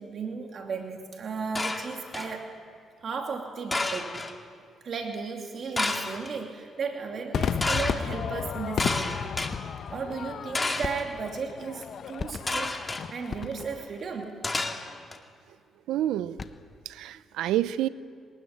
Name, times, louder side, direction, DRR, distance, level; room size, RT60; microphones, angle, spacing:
voice 1, 0.0-2.5 3.0-4.2 4.8-9.3 9.9-12.8 13.1-14.4, right 5 dB, 55° right, 2 dB, 2.8 m, -35 dB
sound 1, 1.6-2.4 3.7-4.3 5.8-6.3 7.6-8.0 8.8-9.5 10.5-11.0 12.5-13.0 14.4-15.2, left 2 dB, 20° left, 2.3 m, -30 dB
Crowd / Fireworks, 7.3-13.9, left 7 dB, 60° left, 1.0 m, -34 dB
sound 2, 7.9-8.5 9.5-9.9 10.8-11.4 12.2-12.8 13.3-14.0 16.2-16.8, left 4 dB, 35° left, 1.2 m, -39 dB
voice 2, 15.9-16.4 16.8-17.9, right 12 dB, 90° right, 15 dB, 0.7 m, -28 dB
23.5 x 20.0 x 9.9 m, 2.2 s
cardioid pair, 90°, 0 cm